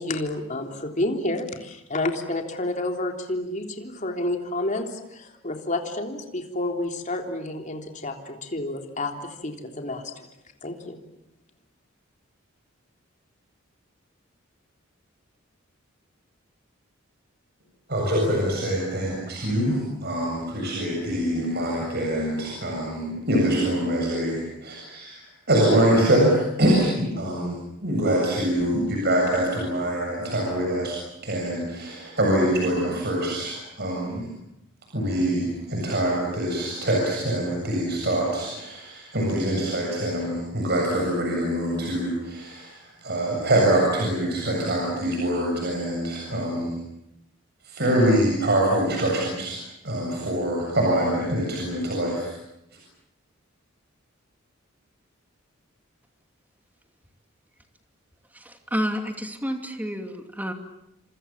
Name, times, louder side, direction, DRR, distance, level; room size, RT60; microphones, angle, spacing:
voice 1, 0.0-10.3 10.6-11.0, left 2 dB, 40° left, 3 dB, 3.6 m, -30 dB
voice 2, 17.9-30.9 31.2-34.3 34.9-46.8 47.6-52.3, right 1 dB, 55° right, -1 dB, 7.7 m, -24 dB
voice 3, 58.3-60.5, equal, 10° right, 5 dB, 2.8 m, -30 dB
29.5 x 26.5 x 7.4 m, 0.82 s
head